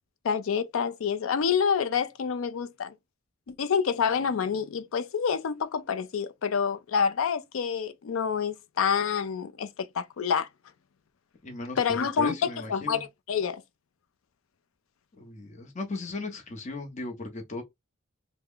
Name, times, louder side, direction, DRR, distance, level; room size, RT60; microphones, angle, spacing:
voice 1, 0.2-2.9 3.5-9.7 9.9-10.5 11.8-13.6, left 6 dB, 75° left, 0.4 m, -27 dB
voice 2, 11.4-13.0 15.2-17.6, left 3 dB, 35° left, 0.6 m, -36 dB
3.4 x 2.0 x 3.6 m
head